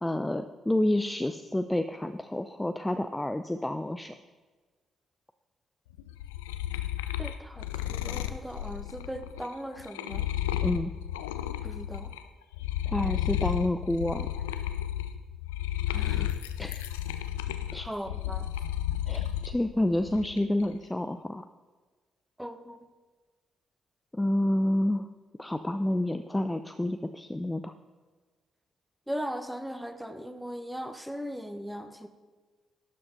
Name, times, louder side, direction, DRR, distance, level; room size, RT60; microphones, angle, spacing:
voice 1, 0.0-4.1 10.6-10.9 12.9-14.4 16.6-16.9 17.7-17.9 19.1-21.4 24.1-25.1 25.4-27.7, left 1 dB, 10° left, 9 dB, 0.4 m, -29 dB
sound 1, 6.0-12.2 12.5-19.6 20.0-20.6, left 12 dB, 80° left, 0.3 m, -33 dB
voice 2, 7.2-7.7 7.9-10.3 11.6-12.1 15.9-16.3 17.8-18.4 22.4-22.8 29.1-32.1, equal, 5° right, 9 dB, 0.9 m, -38 dB
12.0 x 7.6 x 3.9 m, 1.4 s
figure-of-eight pair, 40°, 0 cm